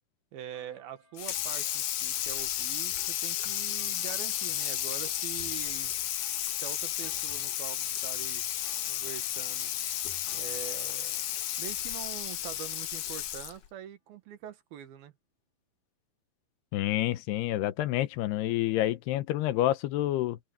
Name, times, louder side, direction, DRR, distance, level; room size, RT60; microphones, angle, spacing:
voice 1, 0.3-5.9 6.6-8.5 8.9-9.7 10.3-15.1, right 10 dB, 70° right, 3.2 m, -44 dB
sound 1, 0.5-13.6, left 1 dB, 10° left, 6.5 m, -61 dB
Water tap faucet / Sink (filling or washing), 1.2-13.7, left 12 dB, 70° left, 2.2 m, -33 dB
voice 2, 16.7-20.4, left 14 dB, 85° left, 3.0 m, -28 dB
open air
omnidirectional pair, 4.7 m